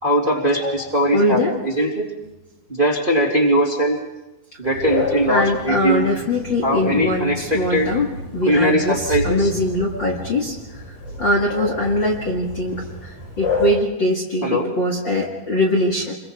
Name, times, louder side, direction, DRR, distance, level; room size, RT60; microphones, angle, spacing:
voice 1, 0.0-2.1 2.7-4.0 4.6-6.1 6.6-7.9 8.5-9.5 14.4-14.7, equal, 15° right, -2 dB, 2.4 m, -20 dB
voice 2, 1.1-1.6 5.3-10.8 11.2-16.1, left 1 dB, 35° left, -1 dB, 2.2 m, -22 dB
sound 1, 4.6-13.7, left 3 dB, 75° left, 8.2 m, -30 dB
29.0 x 23.0 x 4.5 m, 0.98 s
omnidirectional pair, 4.3 m